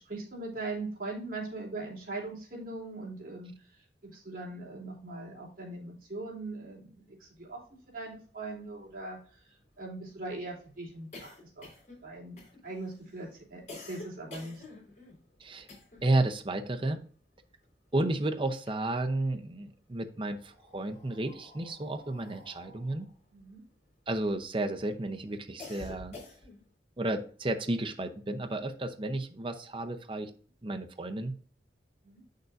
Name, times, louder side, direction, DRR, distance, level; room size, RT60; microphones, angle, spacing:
voice 1, 0.0-3.5 4.1-7.6 7.9-9.2 9.8-11.7 12.0-14.6 23.3-23.6 32.0-32.2, right 2 dB, 50° right, -3 dB, 3.1 m, -40 dB
sound 1, 8.0-8.1 8.3-8.4 8.7-16.2 16.5-18.1 18.4-19.4 20.1-24.6 25.0-26.7, left 2 dB, 40° left, 3.9 m, -50 dB
voice 2, 16.0-17.0 17.9-23.1 24.1-26.2 27.0-30.3 30.6-31.4, right 2 dB, 30° right, 5 dB, 0.7 m, -32 dB
8.1 x 6.6 x 2.5 m, 0.43 s
head